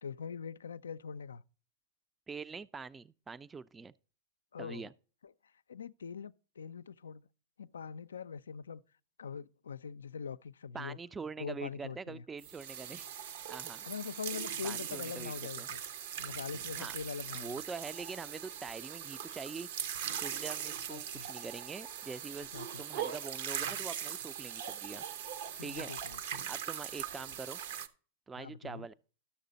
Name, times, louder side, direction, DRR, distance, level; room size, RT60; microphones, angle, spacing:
voice 1, 0.0-1.4 4.5-4.9 5.2-5.3 5.7-7.3 7.6-8.8 9.2-11.0 11.4-12.2 13.8-15.8 16.2-17.6 20.9-21.3 22.5-22.8 25.6-26.4 28.3-28.9, left 6 dB, 90° left, 0.3 m, -43 dB
voice 2, 2.3-3.9 4.6-4.9 10.7-13.1 13.5-13.9 14.6-15.7 16.8-17.0 17.3-19.7 20.2-22.5 22.8-25.0 25.6-25.9 26.5-27.6 28.3-28.9, right 5 dB, 15° right, 0.4 m, -44 dB
sound 1, 12.4-27.9, right 9 dB, 70° right, 0.9 m, -40 dB
12.0 x 6.7 x 3.9 m
hypercardioid pair, 110°, 0 cm